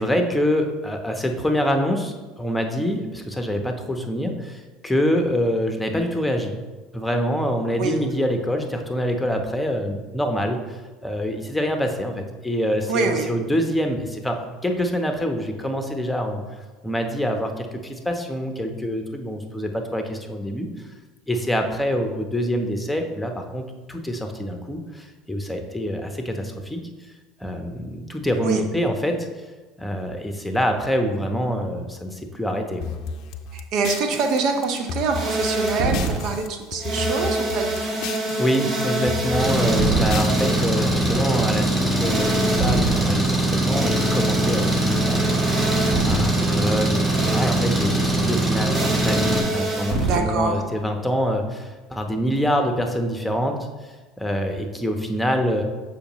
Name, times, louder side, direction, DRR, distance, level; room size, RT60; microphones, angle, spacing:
voice 1, 0.0-6.6 6.9-14.4 14.6-16.4 16.8-20.7 21.3-26.9 27.4-29.3 29.8-33.0 38.4-45.8 46.1-53.6 53.8-55.6, equal, 5° left, 4 dB, 0.9 m, -25 dB
voice 2, 12.9-13.3 28.4-28.6 33.5-38.0 50.0-50.7, right 4 dB, 60° right, 5 dB, 0.9 m, -25 dB
sound 1, 32.8-36.5 36.7-38.6 38.8-41.1, left 5 dB, 60° left, 0.5 m, -34 dB
sound 2, 34.0-36.3 36.8-43.1 43.7-46.3 47.1-47.6 48.7-50.2, right 2 dB, 45° right, 1.5 m, -26 dB
Engine, 39.4-49.4, right 1 dB, 15° right, 1.5 m, -22 dB
6.8 x 5.0 x 3.1 m, 1.3 s
hypercardioid pair, 75°, 0 cm